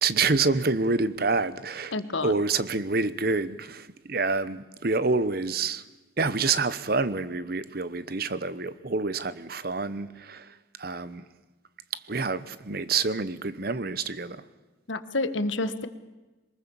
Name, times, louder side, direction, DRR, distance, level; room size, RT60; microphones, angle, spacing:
voice 1, 0.0-1.9 2.2-5.8 6.2-11.2 11.9-14.4, right 4 dB, 50° right, 1.0 m, -27 dB
voice 2, 1.9-2.3 14.9-15.9, left 2 dB, 80° left, 1.4 m, -28 dB
23.0 x 20.5 x 7.1 m
head